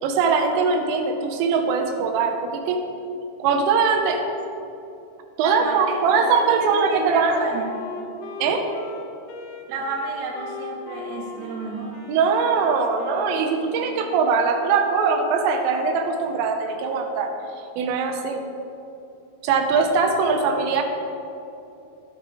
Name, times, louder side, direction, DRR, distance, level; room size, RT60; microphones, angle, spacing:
voice 1, 0.0-2.8 3.4-4.2 5.4-7.4 8.4-8.6 12.1-17.3 17.8-18.4 19.4-20.8, right 5 dB, 90° right, 4 dB, 3.4 m, -21 dB
voice 2, 5.4-7.6 9.7-12.0, right 3 dB, 65° right, -1 dB, 2.9 m, -32 dB
Wind instrument woodwind instrument, 5.6-14.2, left 3 dB, 75° left, 3.1 m, -39 dB
12.0 x 9.2 x 3.7 m, 2.8 s
omnidirectional pair, 5.7 m